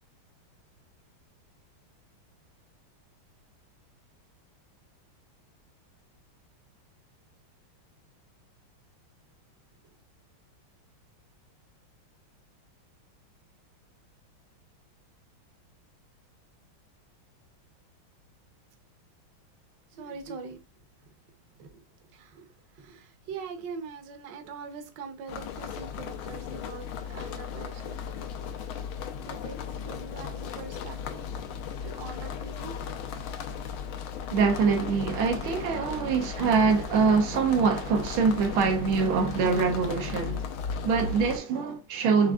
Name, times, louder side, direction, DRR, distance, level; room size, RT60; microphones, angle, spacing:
voice 1, 19.9-20.6 21.6-21.8 22.1-22.5 22.7-28.1 28.6-28.7 29.2-31.2 31.8-32.9, right 5 dB, 65° right, 1.4 m, -42 dB
sound 1, 25.3-41.4, left 7 dB, 85° left, 1.5 m, -36 dB
voice 2, 34.3-40.4 40.8-42.3, right 5 dB, 80° right, 1.5 m, -24 dB
6.0 x 3.2 x 2.3 m
omnidirectional pair, 2.3 m